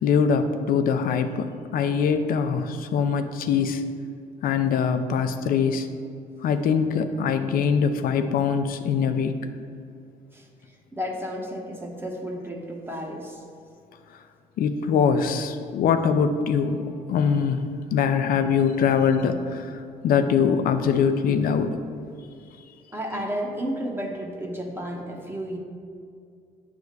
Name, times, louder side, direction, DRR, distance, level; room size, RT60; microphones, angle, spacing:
voice 1, 0.0-3.8 4.4-5.9 6.4-9.3 14.6-21.8, left 6 dB, 70° left, 9 dB, 0.6 m, -23 dB
voice 2, 10.9-13.4 22.9-25.6, equal, 15° right, 1 dB, 1.1 m, -32 dB
9.5 x 3.5 x 6.6 m, 2.4 s
cardioid pair, 125°, 16 cm